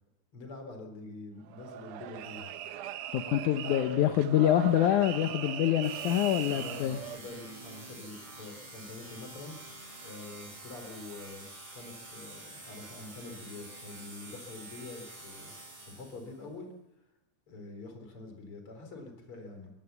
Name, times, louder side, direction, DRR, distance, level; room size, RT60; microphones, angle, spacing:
voice 1, 0.3-2.5 3.6-4.0 6.5-9.6 10.0-15.5 15.9-16.7 17.5-19.7, left 3 dB, 45° left, 5 dB, 4.8 m, -45 dB
sound 1, 1.5-7.2, right 11 dB, 80° right, 2.4 m, -40 dB
voice 2, 3.1-7.0, left 12 dB, 80° left, 7 dB, 2.4 m, -26 dB
sound 2, 5.8-16.4, right 2 dB, 55° right, 8.7 m, -48 dB
23.5 x 18.0 x 7.1 m, 0.90 s
omnidirectional pair, 3.5 m